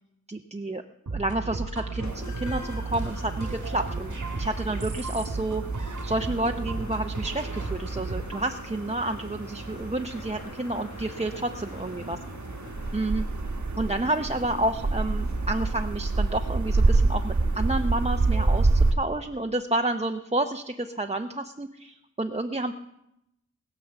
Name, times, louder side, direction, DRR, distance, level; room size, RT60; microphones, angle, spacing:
voice 1, 0.3-0.8 1.1-5.6 6.0-12.2 12.9-13.2 13.8-22.7, right 2 dB, 20° right, 5 dB, 0.7 m, -30 dB
sound 1, 1.1-8.5, right 3 dB, 90° right, 1.7 m, -33 dB
sound 2, 1.9-16.2, left 3 dB, 70° left, 1.5 m, -47 dB
sound 3, 2.1-18.9, right 3 dB, 75° right, 1.3 m, -29 dB
20.0 x 7.0 x 7.0 m, 0.85 s
wide cardioid pair, 50°, 30 cm